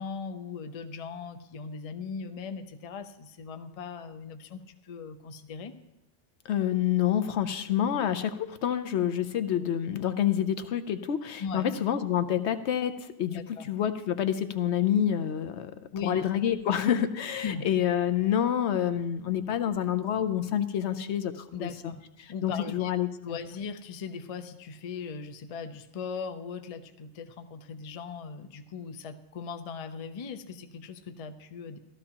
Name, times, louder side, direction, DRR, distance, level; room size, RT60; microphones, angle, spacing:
voice 1, 0.0-5.7 11.4-11.8 13.3-13.7 15.9-16.2 17.4-17.7 21.5-22.0 22.3-22.9 23.2-31.8, left 5 dB, 45° left, 8 dB, 0.5 m, -39 dB
voice 2, 6.4-15.7 16.0-21.7 22.2-23.1, left 10 dB, 70° left, 10 dB, 0.9 m, -28 dB
14.5 x 12.5 x 2.9 m, 0.89 s
omnidirectional pair, 1.2 m